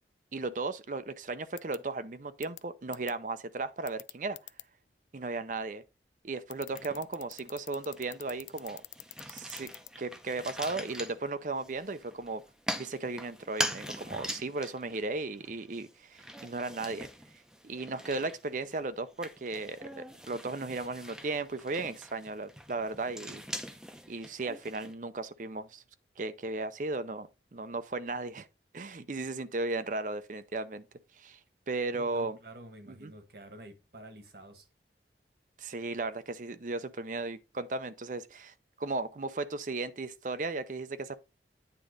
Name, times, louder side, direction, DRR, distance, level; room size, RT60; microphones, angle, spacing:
voice 1, 0.3-4.4 5.1-5.8 6.2-8.8 9.3-9.7 10.0-12.4 12.8-17.1 17.6-23.4 24.1-25.8 26.2-28.5 28.7-30.8 31.2-31.4 31.7-32.4 32.9-33.1 35.6-41.2, right 3 dB, 45° right, 0.6 m, -36 dB
sound 1, 1.6-1.8 2.4-2.6 2.9-3.1 3.9-4.6 6.5-9.9, left 17 dB, 90° left, 0.4 m, -44 dB
sound 2, 6.7-7.4 7.8-24.9, equal, 5° right, 0.6 m, -42 dB
voice 2, 31.9-34.7, right 1 dB, 60° right, 1.6 m, -49 dB
9.1 x 3.8 x 5.1 m
head